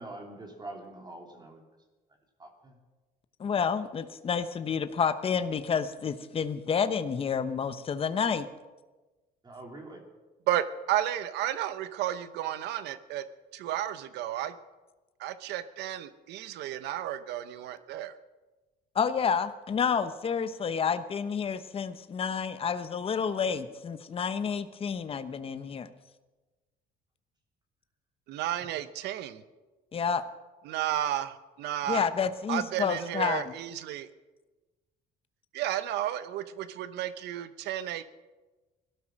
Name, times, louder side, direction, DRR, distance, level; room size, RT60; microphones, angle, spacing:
voice 1, 0.0-1.6 2.4-2.7 9.4-10.0 28.6-28.7, right 2 dB, 25° right, 2 dB, 2.9 m, -44 dB
voice 2, 3.4-8.5 18.9-25.9 29.9-30.2 31.9-33.4, left 6 dB, 35° left, 11 dB, 0.9 m, -29 dB
voice 3, 10.5-13.2 13.5-14.5 15.2-18.1 28.3-29.4 30.6-32.0 32.5-34.1 35.5-38.0, right 12 dB, 80° right, 13 dB, 0.8 m, -32 dB
17.5 x 12.5 x 6.3 m, 1.2 s
cardioid pair, 110°, 17 cm